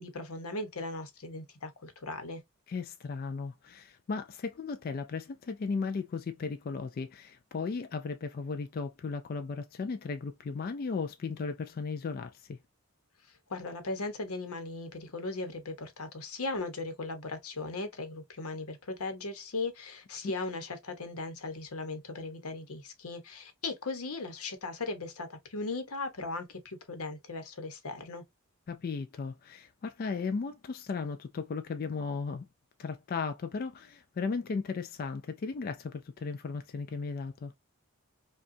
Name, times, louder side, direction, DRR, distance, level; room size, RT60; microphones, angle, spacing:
voice 1, 0.0-2.4 13.5-28.2, left 3 dB, 85° left, 1.0 m, -38 dB
voice 2, 2.7-12.6 20.2-20.3 28.7-32.4 32.8-37.5, left 4 dB, 45° left, 0.3 m, -36 dB
5.2 x 2.3 x 2.6 m
head